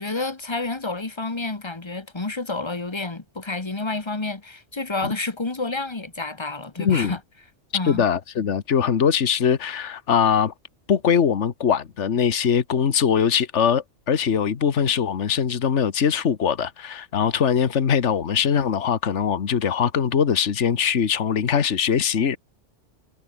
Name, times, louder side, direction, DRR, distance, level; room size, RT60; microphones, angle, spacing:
voice 1, 0.0-7.2 7.7-8.1, left 3 dB, 20° left, 1.6 m, -29 dB
voice 2, 6.8-7.1 7.9-10.5 10.9-22.4, left 7 dB, 70° left, 1.6 m, -21 dB
omnidirectional pair, 1.3 m